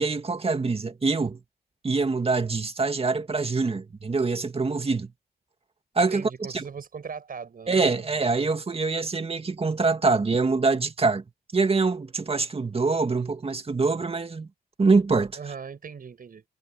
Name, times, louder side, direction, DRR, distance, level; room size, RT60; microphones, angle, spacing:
voice 1, 0.0-1.4 1.8-5.1 6.0-6.6 7.7-11.2 11.5-14.5 14.8-15.4, right 4 dB, 35° right, 2.2 m, -24 dB
voice 2, 6.1-8.3 15.4-16.4, right 6 dB, 65° right, 7.2 m, -39 dB
cardioid pair, 75°, 16 cm